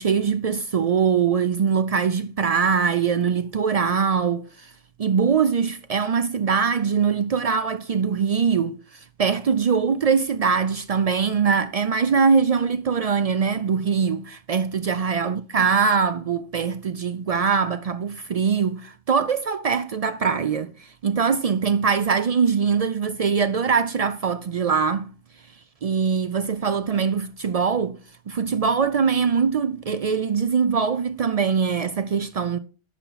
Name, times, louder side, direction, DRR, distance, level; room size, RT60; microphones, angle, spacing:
voice 1, 0.0-4.7 5.0-25.1 25.8-28.0 28.3-32.6, right 6 dB, 75° right, 0.3 m, -22 dB
10.0 x 5.9 x 4.0 m
omnidirectional pair, 1.2 m